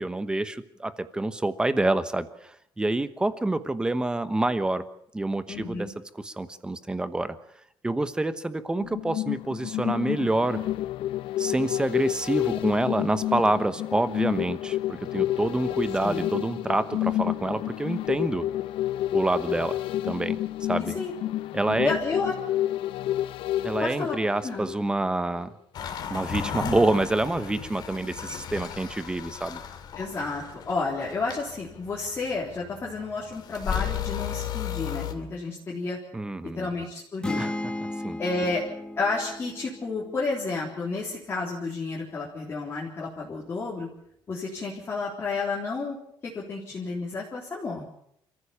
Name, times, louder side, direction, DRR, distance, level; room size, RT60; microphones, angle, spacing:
voice 1, 0.0-2.3 2.8-4.8 5.1-5.9 6.2-7.4 7.8-10.6 11.4-18.5 19.1-19.8 20.0-20.4 20.7-21.0 21.5-22.0 23.6-25.5 26.1-29.6 36.1-36.7 37.4-37.7 38.0-38.2, right 2 dB, 10° right, 12 dB, 1.1 m, -27 dB
voice 2, 5.5-5.9 16.0-16.3 20.8-21.1 21.8-22.3 23.8-24.2 24.4-24.7 30.0-36.0 36.6-37.5 38.2-38.6 39.0-43.9 44.3-46.0 46.2-47.9, left 3 dB, 25° left, -3 dB, 3.6 m, -31 dB
sound 1, 8.8-25.0 25.4-25.5, left 13 dB, 85° left, 0.7 m, -30 dB
sound 2, 25.7-35.1, left 9 dB, 55° left, 2.4 m, -35 dB
sound 3, 37.2-41.0, left 1 dB, 10° left, 2.3 m, -35 dB
28.0 x 14.5 x 7.0 m, 0.72 s
cardioid pair, 165°, 9 cm